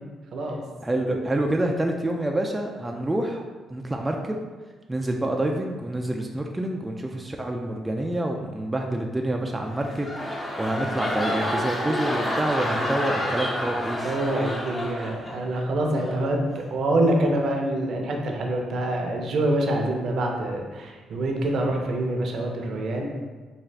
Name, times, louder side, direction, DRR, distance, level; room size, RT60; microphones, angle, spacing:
voice 1, 0.3-0.6 14.0-23.1, right 1 dB, 65° right, 1 dB, 0.6 m, -25 dB
voice 2, 0.8-3.4 3.7-4.4 4.9-14.1, right 1 dB, 15° right, 1 dB, 0.3 m, -27 dB
sound 1, 9.6-15.6 16.0-16.3, left 1 dB, 20° left, 0.6 m, -29 dB
3.6 x 2.4 x 3.3 m, 1.3 s
cardioid pair, 90°, 0 cm